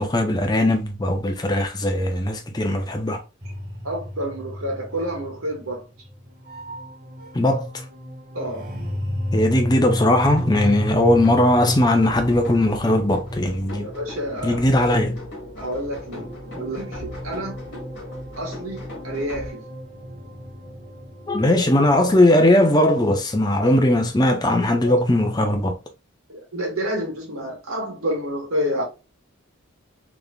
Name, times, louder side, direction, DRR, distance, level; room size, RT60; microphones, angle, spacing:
voice 1, 0.0-3.2 7.3-7.7 9.3-13.9 14.4-15.3 21.3-25.8, left 1 dB, 20° left, 0.6 m, -19 dB
sound 1, 3.4-22.2, equal, 35° right, 2.0 m, -33 dB
voice 2, 3.8-5.8 8.3-8.7 13.8-14.7 15.6-17.6 18.4-18.8 19.0-19.6 23.6-23.7 24.8-24.9 26.3-28.8, equal, 80° right, 1.8 m, -29 dB
sound 2, 10.2-19.5, left 2 dB, 55° left, 2.0 m, -39 dB
4.1 x 3.5 x 2.3 m
head